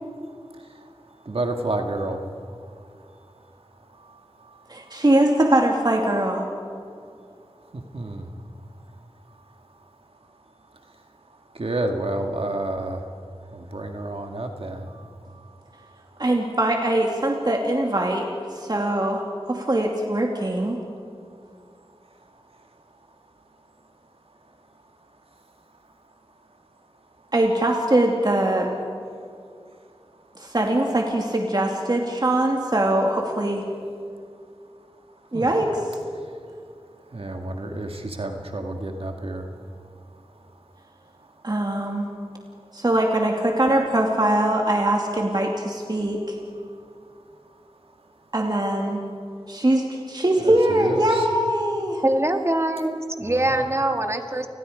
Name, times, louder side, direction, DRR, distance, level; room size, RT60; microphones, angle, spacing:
voice 1, 1.3-2.2 7.7-8.3 11.6-13.0 13.5-14.9 35.3-35.5 37.1-39.4 50.4-51.3 53.2-53.7, right 2 dB, 65° right, 4 dB, 1.9 m, -29 dB
voice 2, 4.7-6.4 16.2-18.2 18.5-19.2 19.5-20.8 27.3-28.7 30.4-33.6 35.3-35.7 41.4-42.1 42.7-46.4 48.3-49.0 49.5-52.0, right 1 dB, 40° right, 1 dB, 2.5 m, -22 dB
voice 3, 52.0-54.5, right 1 dB, 25° right, 5 dB, 2.1 m, -23 dB
29.5 x 20.5 x 5.1 m, 2.3 s
wide cardioid pair, 40°, 10 cm